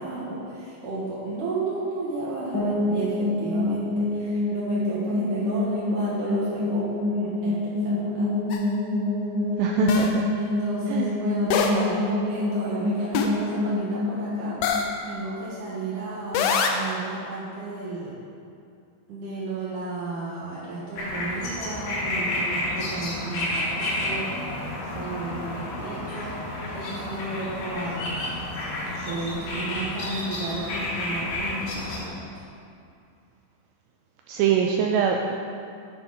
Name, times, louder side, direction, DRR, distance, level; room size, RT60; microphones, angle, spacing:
voice 1, 0.0-8.3 10.4-14.6 15.0-18.2 19.1-24.6 24.9-26.4 26.7-28.1 29.1-32.3, right 3 dB, 60° right, -7 dB, 2.2 m, -33 dB
sound 1, 2.5-15.4, left 2 dB, 35° left, 1.9 m, -27 dB
sound 2, 8.5-8.6 9.9-10.1 11.5-11.9 13.1-13.4 14.6-15.0 16.3-16.9, left 5 dB, 85° left, 2.1 m, -23 dB
voice 2, 9.6-10.2 10.9-11.1 34.3-35.3, right 7 dB, 80° right, 2 dB, 2.6 m, -23 dB
sound 3, 20.9-32.0, left 1 dB, 65° left, 3.5 m, -30 dB
9.9 x 8.5 x 4.9 m, 2.5 s
omnidirectional pair, 5.4 m